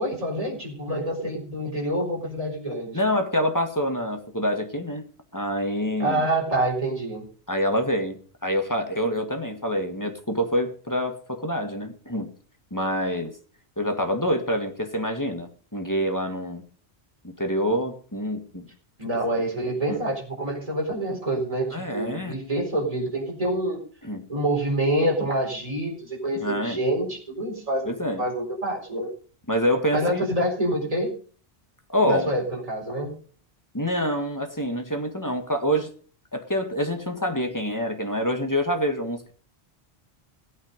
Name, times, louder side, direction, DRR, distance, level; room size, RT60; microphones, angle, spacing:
voice 1, 0.0-3.0 6.0-7.2 19.0-23.9 24.3-27.9 28.2-29.1 29.9-31.2 32.0-33.2, right 1 dB, 35° right, -1 dB, 4.4 m, -27 dB
voice 2, 2.9-5.0 5.3-6.3 7.5-12.3 12.7-13.4 13.8-16.6 17.2-18.7 19.9-20.0 21.7-22.4 24.0-24.3 26.4-26.8 27.9-28.2 29.5-30.2 31.9-32.3 33.7-35.9 36.3-39.3, equal, 15° left, 5 dB, 1.8 m, -26 dB
17.0 x 8.9 x 5.3 m, 0.42 s
omnidirectional pair, 1.1 m